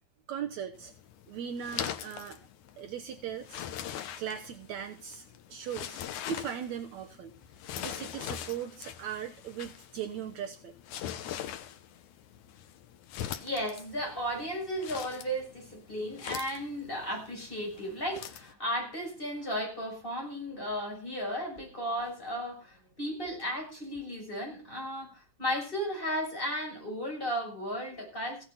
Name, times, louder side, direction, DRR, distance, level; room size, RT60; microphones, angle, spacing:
voice 1, 0.3-0.9 1.3-2.4 2.8-3.6 4.2-6.0 6.3-7.3 7.8-10.7, right 8 dB, 85° right, 5 dB, 1.6 m, -38 dB
sound 1, 0.7-18.5, left 10 dB, 70° left, 1.9 m, -42 dB
voice 2, 13.4-28.4, equal, 10° left, 0 dB, 6.5 m, -35 dB
16.0 x 8.5 x 5.6 m, 0.34 s
omnidirectional pair, 4.6 m